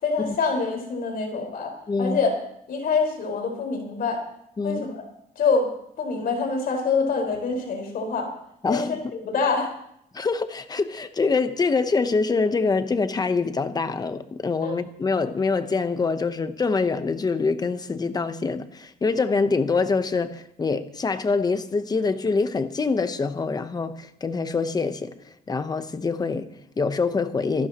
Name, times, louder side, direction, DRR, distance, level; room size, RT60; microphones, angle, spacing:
voice 1, 0.0-1.7 2.0-2.3 2.7-4.2 4.6-5.1 5.3-5.7 6.0-8.3 8.7-9.0 9.2-9.7 14.6-14.7, left 4 dB, 65° left, 4.8 m, -25 dB
voice 2, 1.9-2.2 4.6-4.8 8.6-9.1 10.1-27.7, left 4 dB, 25° left, 0.9 m, -25 dB
26.5 x 12.5 x 3.0 m
cardioid pair, 140°, 17 cm